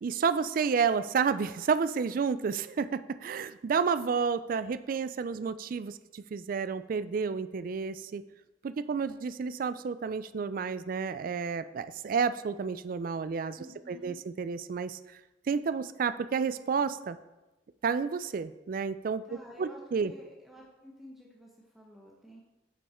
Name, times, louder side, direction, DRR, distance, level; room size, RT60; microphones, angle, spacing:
voice 1, 0.0-8.2 8.6-13.6 13.9-15.0 15.5-17.2 17.8-20.1, right 5 dB, 45° right, 14 dB, 0.3 m, -30 dB
voice 2, 13.6-14.2 19.3-22.4, equal, ahead, -3 dB, 0.8 m, -51 dB
8.3 x 5.3 x 4.3 m, 1.1 s
head